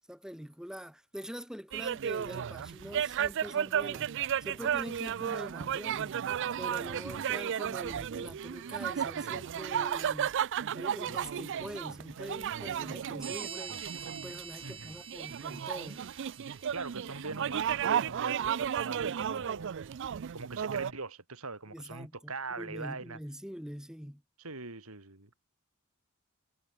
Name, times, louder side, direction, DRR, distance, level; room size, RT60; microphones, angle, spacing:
voice 1, 0.1-4.1 4.4-6.2 6.6-10.3 10.7-13.8 14.1-16.0 21.7-24.2, equal, 5° right, 2.0 m, -44 dB
sound 1, 1.7-20.9, right 8 dB, 55° right, 0.4 m, -34 dB
voice 2, 7.1-7.4 14.6-15.0 16.7-19.9 20.3-23.2 24.4-25.3, right 3 dB, 75° right, 3.6 m, -42 dB
sound 2, 13.2-17.5, right 6 dB, 25° right, 2.5 m, -46 dB
head